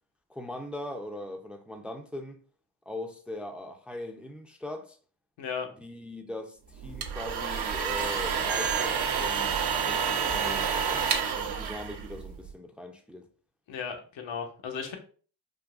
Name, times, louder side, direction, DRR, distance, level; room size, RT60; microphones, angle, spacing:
voice 1, 0.3-2.4 2.9-5.0 5.8-11.0 11.4-13.3, left 1 dB, ahead, 0.5 m, -40 dB
voice 2, 5.4-5.7 13.7-15.0, left 6 dB, 70° left, 0.9 m, -35 dB
sound 1, 6.8-12.5, right 6 dB, 60° right, 0.7 m, -29 dB
3.7 x 2.5 x 2.4 m
supercardioid pair, 50°, 46 cm